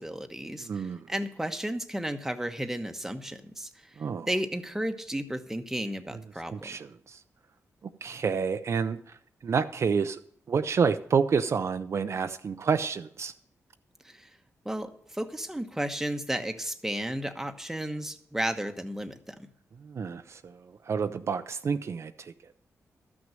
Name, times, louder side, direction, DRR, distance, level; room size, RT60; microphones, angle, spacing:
voice 1, 0.0-3.7 4.3-6.8 14.0-14.3 14.6-19.5, right 1 dB, 5° right, 7 dB, 1.0 m, -33 dB
voice 2, 0.6-1.0 4.0-4.3 6.5-6.9 8.0-9.0 9.4-10.2 10.5-13.3 19.9-20.4 20.9-22.3, right 6 dB, 55° right, 9 dB, 0.5 m, -28 dB
13.0 x 6.2 x 7.5 m, 0.66 s
cardioid pair, 85°, 6 cm